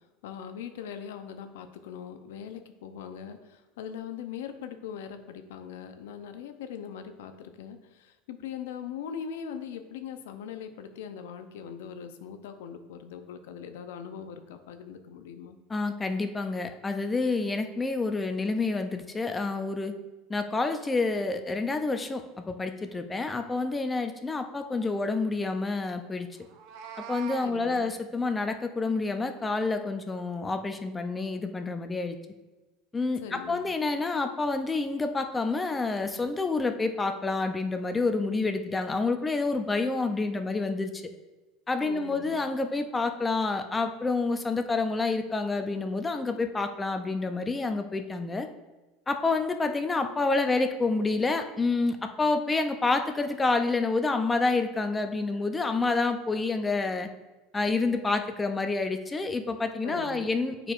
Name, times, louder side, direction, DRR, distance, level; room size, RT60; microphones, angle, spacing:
voice 1, 0.2-15.6 27.4-28.0 33.2-33.7 41.8-42.5 59.8-60.3, left 7 dB, 90° left, 8 dB, 0.6 m, -41 dB
voice 2, 15.7-19.9 20.3-26.3 27.1-32.2 32.9-40.9 41.7-48.5 49.1-57.1 57.5-60.7, left 3 dB, 15° left, 7 dB, 0.5 m, -28 dB
Meow, 26.4-27.5, right 8 dB, 65° right, 0.5 m, -41 dB
8.8 x 4.5 x 2.5 m, 1.2 s
supercardioid pair, 125°, 0 cm